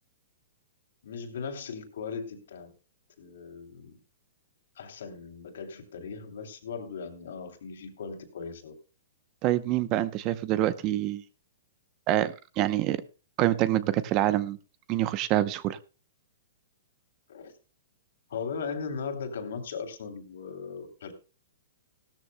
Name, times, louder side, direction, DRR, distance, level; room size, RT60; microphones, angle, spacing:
voice 1, 1.0-2.7 3.2-4.0 4.8-8.7 17.3-17.5 18.3-21.1, left 5 dB, 75° left, 4 dB, 3.0 m, -38 dB
voice 2, 9.4-11.2 12.1-13.0 13.4-14.6 14.9-15.8, right 14 dB, 30° right, 15 dB, 0.7 m, -26 dB
17.0 x 13.0 x 2.2 m, 0.33 s
hypercardioid pair, 150°, 0 cm